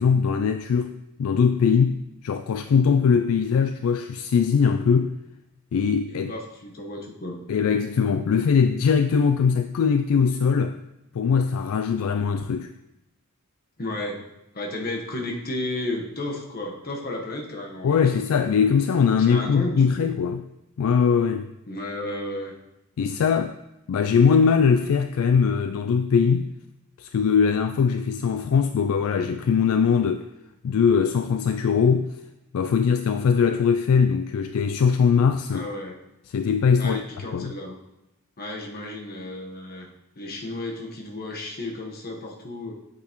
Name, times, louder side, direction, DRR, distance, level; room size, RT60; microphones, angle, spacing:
voice 1, 0.0-5.1 5.7-6.3 7.5-10.8 11.1-12.7 17.8-20.4 20.8-21.5 23.0-23.6 23.9-26.5 27.0-30.3 30.6-32.1 32.5-35.7 36.3-37.0 37.3-37.5, left 6 dB, 65° left, 0.3 m, -21 dB
voice 2, 6.1-7.4 13.8-14.2 14.5-18.2 19.2-20.1 21.7-22.6 35.5-36.0 36.8-37.8 38.4-39.9 40.1-42.7, left 1 dB, 45° left, 1.2 m, -33 dB
8.4 x 6.8 x 3.0 m
head